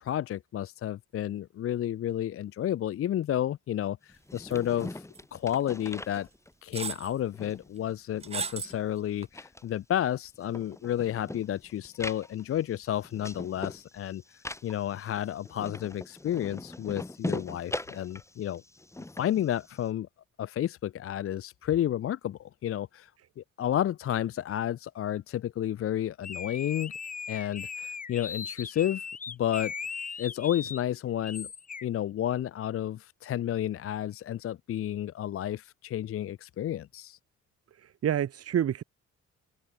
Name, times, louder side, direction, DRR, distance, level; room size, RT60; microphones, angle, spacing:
voice 1, 0.0-5.0 5.3-6.3 6.6-18.6 19.2-20.1 20.4-23.1 23.4-26.9 27.3-29.7 30.2-31.5 31.8-37.2, left 11 dB, 50° left, 0.5 m, -31 dB
sound 1, 4.1-6.8 7.1-9.0 9.3-19.9, left 2 dB, 10° left, 1.3 m, -41 dB
sound 2, 4.5-4.9 5.1-5.2 6.1-6.2 6.7-7.1 8.2-8.8 9.2-9.3, right 5 dB, 20° right, 0.4 m, -35 dB
sound 3, 26.2-30.8 31.2-31.9, left 5 dB, 25° left, 0.9 m, -38 dB
voice 2, 37.8-38.8, right 10 dB, 50° right, 1.2 m, -28 dB
cardioid pair, 90°, 30 cm